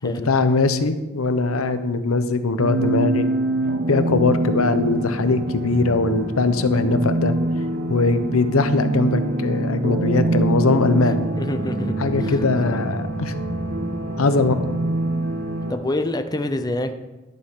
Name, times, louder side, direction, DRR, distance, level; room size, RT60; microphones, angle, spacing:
voice 1, 0.0-3.3 3.9-7.3 7.9-11.3 12.0-13.3 14.2-14.6, left 3 dB, 80° left, 10 dB, 0.9 m, -21 dB
sound 1, 2.6-15.7, right 1 dB, 50° right, 1.2 m, -25 dB
voice 2, 11.4-11.9 12.2-12.5 15.7-16.9, left 1 dB, 20° left, 8 dB, 0.6 m, -26 dB
12.0 x 10.5 x 3.7 m, 1.1 s
head